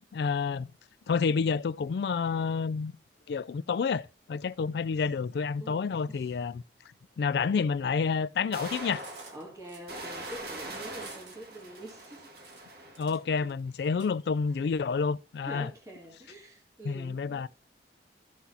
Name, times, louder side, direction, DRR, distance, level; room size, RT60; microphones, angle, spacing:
voice 1, 0.1-0.7 1.1-2.9 3.3-6.6 7.2-9.0 13.0-15.7 16.9-17.5, left 5 dB, 60° left, 0.3 m, -29 dB
voice 2, 5.6-6.3 9.3-12.3 13.4-13.5 13.8-14.0 14.5-14.7 15.4-17.4, right 1 dB, 20° right, 1.8 m, -46 dB
sound 1, 5.8-5.9 7.7-7.8 8.5-13.2, right 2 dB, 55° right, 1.7 m, -42 dB
Cutlery silverware, 8.4-14.1, right 4 dB, 85° right, 1.9 m, -53 dB
14.0 x 6.1 x 2.7 m
head